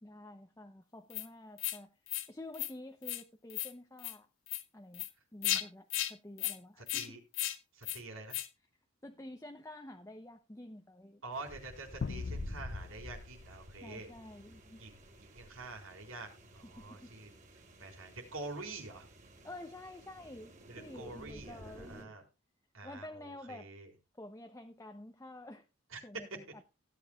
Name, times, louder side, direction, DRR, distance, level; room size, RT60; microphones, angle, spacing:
voice 1, 0.0-1.9 2.3-4.3 4.7-5.0 5.3-7.2 9.0-11.2 13.8-14.8 16.6-17.1 17.8-17.9 19.4-22.2 22.8-23.7 24.2-25.6 26.0-26.6, left 1 dB, 15° left, 5 dB, 0.7 m, -49 dB
sound 1, 1.1-1.3 1.6-1.8 2.1-2.3 2.5-2.7 3.0-3.2 3.5-3.7 4.0-4.1 4.5-4.6 4.9-5.1 5.4-5.6 5.9-6.1 6.4-6.6 6.9-7.1 7.3-7.6 7.8-8.0 8.3-8.5, left 13 dB, 70° left, 1.3 m, -35 dB
voice 2, 7.7-8.4 11.2-14.1 14.8-16.3 16.5-17.3 17.8-19.1 20.7-22.2 22.7-23.9 25.9-26.0, right 2 dB, 80° right, 3 dB, 4.3 m, -47 dB
sound 2, 11.3-22.0, equal, 35° right, 3.1 m, -51 dB
sound 3, 12.0-14.6, left 4 dB, 55° left, 0.4 m, -42 dB
17.0 x 9.5 x 2.4 m, 0.29 s
head